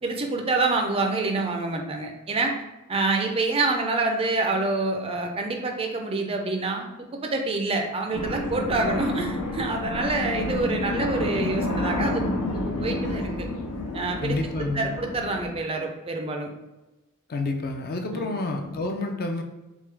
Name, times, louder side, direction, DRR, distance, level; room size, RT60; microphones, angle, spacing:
voice 1, 0.0-2.6 2.9-12.3 12.6-13.5 13.9-16.5 18.1-18.3, right 3 dB, 25° right, 3 dB, 0.4 m, -27 dB
sound 1, 8.1-15.5, left 2 dB, 85° left, 0.6 m, -29 dB
voice 2, 14.2-14.9 17.3-19.4, left 2 dB, 45° left, 3 dB, 0.5 m, -29 dB
3.6 x 3.0 x 3.3 m, 1.0 s
head